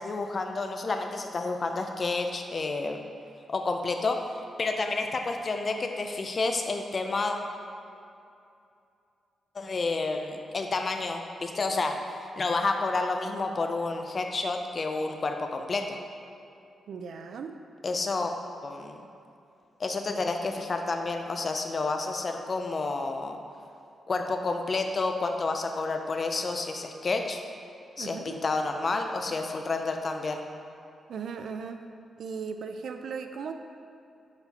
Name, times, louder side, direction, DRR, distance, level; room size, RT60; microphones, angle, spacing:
voice 1, 0.0-3.0 3.5-4.2 4.6-7.4 9.5-12.0 12.4-16.0 17.8-18.3 18.6-19.0 19.8-23.4 24.1-27.4 28.0-30.4, left 3 dB, 35° left, 4 dB, 0.5 m, -30 dB
voice 2, 16.9-17.6 28.0-28.4 31.1-31.9 32.2-33.5, right 6 dB, 65° right, 7 dB, 0.3 m, -37 dB
6.8 x 4.2 x 4.1 m, 2.6 s
wide cardioid pair, 150°, 0 cm